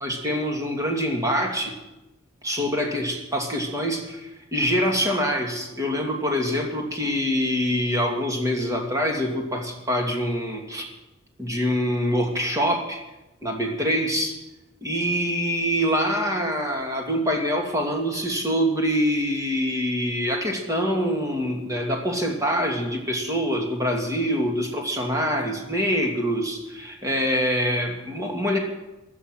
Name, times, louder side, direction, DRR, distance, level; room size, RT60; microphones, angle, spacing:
voice 1, 0.0-1.7 2.4-10.8 11.4-13.0 13.4-14.4 14.8-28.6, equal, 15° right, 1 dB, 2.5 m, -25 dB
16.0 x 13.0 x 6.4 m, 0.99 s
head